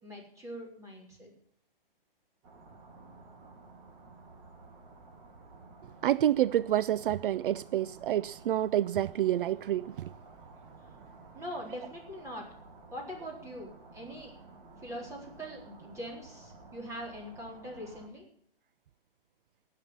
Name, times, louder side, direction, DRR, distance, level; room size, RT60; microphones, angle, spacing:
voice 1, 0.0-1.3 11.3-12.5 12.9-14.3 14.8-18.2, equal, 10° right, 4.0 m, -42 dB
sound 1, 2.4-18.1, right 3 dB, 35° right, 3.5 m, -53 dB
voice 2, 6.0-10.1, right 12 dB, 65° right, 0.4 m, -28 dB
18.0 x 6.7 x 7.4 m
hypercardioid pair, 150°, 29 cm